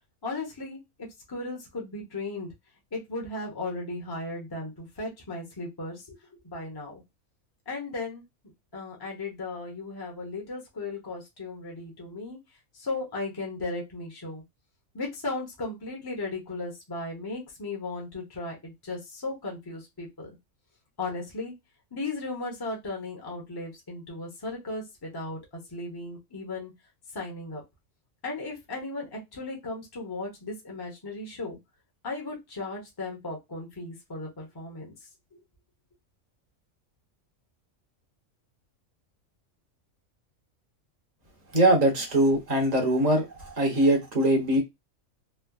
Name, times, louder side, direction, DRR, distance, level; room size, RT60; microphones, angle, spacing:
voice 1, 0.2-0.8 1.3-2.5 2.9-6.2 6.4-7.0 7.7-8.2 8.7-12.4 12.7-14.4 14.9-20.3 21.0-21.5 21.9-25.4 25.7-26.7 27.1-27.6 28.2-31.6 32.0-34.9 35.3-35.4, left 2 dB, 20° left, 0 dB, 0.9 m, -36 dB
voice 2, 41.5-44.6, right 1 dB, 35° right, 1 dB, 1.0 m, -22 dB
3.3 x 2.2 x 2.3 m, 0.20 s
omnidirectional pair, 1.4 m